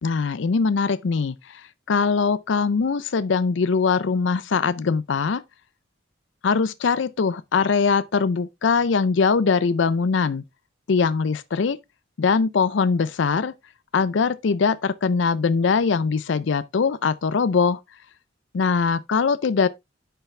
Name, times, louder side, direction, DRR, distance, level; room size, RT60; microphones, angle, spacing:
voice 1, 0.0-5.4 6.4-10.4 10.9-11.8 12.2-13.5 13.9-17.8 18.5-19.7, left 5 dB, 65° left, 0.4 m, -22 dB
10.0 x 5.7 x 3.2 m
head